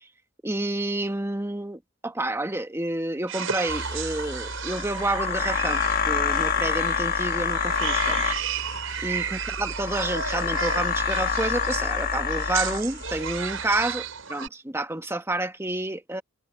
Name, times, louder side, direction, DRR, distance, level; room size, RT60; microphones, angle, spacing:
voice 1, 0.4-8.4 9.0-16.2, right 1 dB, 15° right, 1.5 m, -29 dB
sound 1, 3.3-14.5, right 7 dB, 90° right, 5.8 m, -33 dB
sound 2, 3.7-13.9, left 6 dB, 45° left, 1.3 m, -28 dB
head